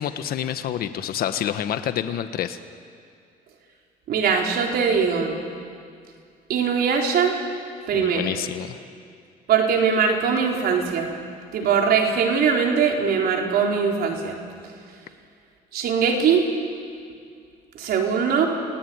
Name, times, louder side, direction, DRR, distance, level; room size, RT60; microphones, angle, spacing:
voice 1, 0.0-2.6 7.9-8.8, left 10 dB, 65° left, 9 dB, 1.3 m, -28 dB
voice 2, 4.1-5.4 6.5-7.3 7.9-8.3 9.5-11.1 11.5-14.4 15.7-16.4 17.7-18.5, right 6 dB, 65° right, 1 dB, 4.3 m, -21 dB
29.5 x 18.0 x 9.5 m, 2.2 s
cardioid pair, 110°, 17 cm